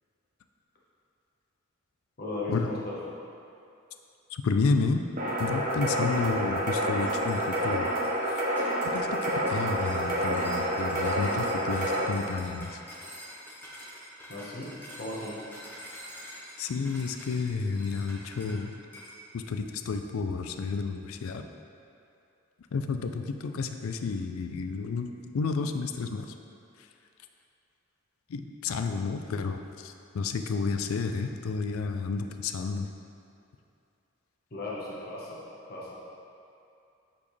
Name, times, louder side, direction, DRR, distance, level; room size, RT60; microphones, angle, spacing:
voice 1, 2.2-3.0 14.3-15.4 34.5-35.9, left 2 dB, 45° left, -6 dB, 1.2 m, -36 dB
voice 2, 4.3-5.0 5.4-7.9 8.9-12.7 16.6-18.7 19.3-21.4 22.7-26.3 28.3-32.9, left 4 dB, 80° left, 6 dB, 0.4 m, -31 dB
sound 1, 5.2-12.0, equal, 40° right, 0.8 m, -28 dB
sound 2, 7.0-18.6 18.9-19.2, equal, 10° left, 0.9 m, -46 dB
8.4 x 4.3 x 3.3 m, 2.6 s
head